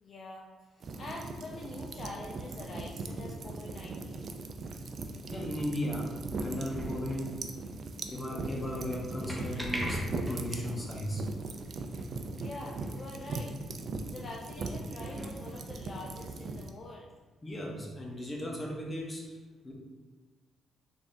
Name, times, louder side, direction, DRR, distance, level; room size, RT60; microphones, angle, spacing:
voice 1, 0.0-4.3 12.4-13.5 14.1-17.1, left 2 dB, 45° left, -2 dB, 0.5 m, -45 dB
sound 1, 0.8-16.7, right 3 dB, 50° right, 0.3 m, -39 dB
sound 2, 5.1-5.7 6.3-7.3 8.4-10.8 11.1-11.2 11.6-11.7 12.0-12.1 12.4-13.1 13.4-13.5 14.3-14.4 14.9-16.0 16.9-17.0, equal, 5° right, 0.7 m, -41 dB
voice 2, 5.3-7.4 7.6-7.8 8.1-11.2 17.4-19.7, equal, 25° left, -1 dB, 0.8 m, -36 dB
3.8 x 3.4 x 2.6 m, 1.3 s
cardioid pair, 90°, 0 cm